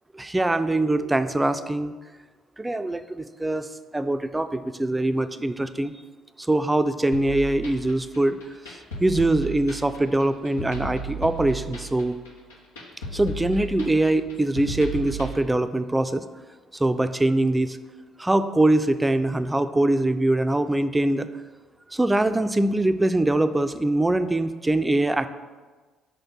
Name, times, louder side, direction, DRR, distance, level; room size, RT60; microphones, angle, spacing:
voice 1, 0.1-1.9 2.6-3.7 3.9-5.9 6.5-8.4 9.0-12.2 13.1-16.2 16.8-17.8 18.2-21.3 21.9-25.3, right 1 dB, 15° right, 11 dB, 0.4 m, -23 dB
sound 1, 7.1-15.3, right 3 dB, 85° left, 0.9 m, -35 dB
4.9 x 4.4 x 6.0 m, 1.4 s
hypercardioid pair, 50°, 0 cm